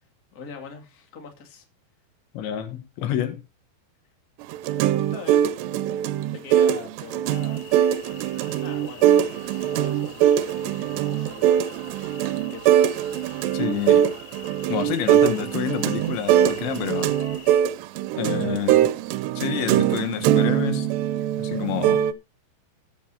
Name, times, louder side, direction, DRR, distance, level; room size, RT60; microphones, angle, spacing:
voice 1, 0.3-1.6 5.1-5.5 6.3-7.7 8.6-12.0 12.5-12.8, left 5 dB, 30° left, 2.1 m, -43 dB
voice 2, 2.4-3.4 13.5-14.1 14.7-17.2 18.2-18.9 19.4-20.9 21.4-22.1, left 10 dB, 90° left, 3.8 m, -28 dB
sound 1, 4.4-22.1, right 11 dB, 80° right, 2.8 m, -22 dB
sound 2, 7.3-17.6, left 9 dB, 65° left, 2.0 m, -47 dB
20.0 x 8.3 x 2.8 m
omnidirectional pair, 5.0 m